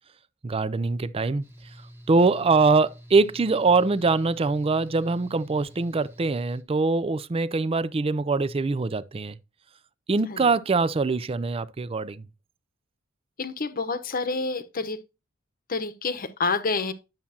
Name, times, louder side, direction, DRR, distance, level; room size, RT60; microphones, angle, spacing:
voice 1, 0.4-1.4 2.1-9.4 10.1-12.2, right 3 dB, 25° right, 0.4 m, -23 dB
Mechanical fan, 1.4-6.6, equal, 10° right, 1.3 m, -48 dB
voice 2, 13.4-15.0 15.7-16.9, left 4 dB, 45° left, 0.9 m, -28 dB
10.5 x 7.1 x 2.8 m
head